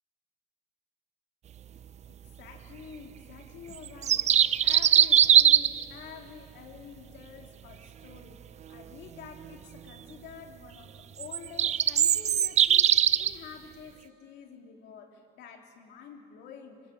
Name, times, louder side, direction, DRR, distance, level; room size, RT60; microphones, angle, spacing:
voice 1, 2.1-8.4 8.7-16.8, left 6 dB, 80° left, 3 dB, 3.4 m, -48 dB
sound 1, 3.8-5.8 11.2-13.3, right 9 dB, 40° right, 0.6 m, -21 dB
28.5 x 24.5 x 7.8 m, 2.4 s
cardioid pair, 110°, 17 cm